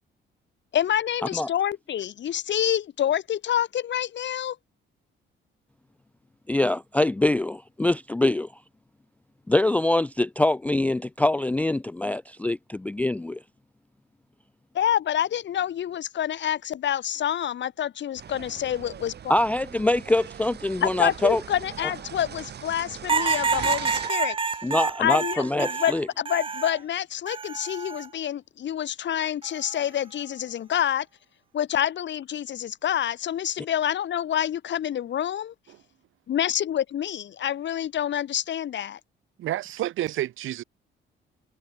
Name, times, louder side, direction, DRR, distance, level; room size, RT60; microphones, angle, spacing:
voice 1, 0.7-4.6 14.7-19.3 20.8-24.4 25.0-31.1 31.5-35.5 36.3-39.0, left 10 dB, 65° left, 3.5 m, -27 dB
voice 2, 6.5-8.5 9.5-13.4 19.3-21.4 24.6-26.1, left 2 dB, 5° left, 0.3 m, -24 dB
sound 1, 18.2-24.1, right 8 dB, 55° right, 3.5 m, -40 dB
sound 2, 23.1-26.8 27.3-28.1 29.4-29.8, right 5 dB, 25° right, 0.8 m, -28 dB
voice 3, 39.4-40.6, right 14 dB, 85° right, 5.4 m, -29 dB
cardioid pair, 90°, 20 cm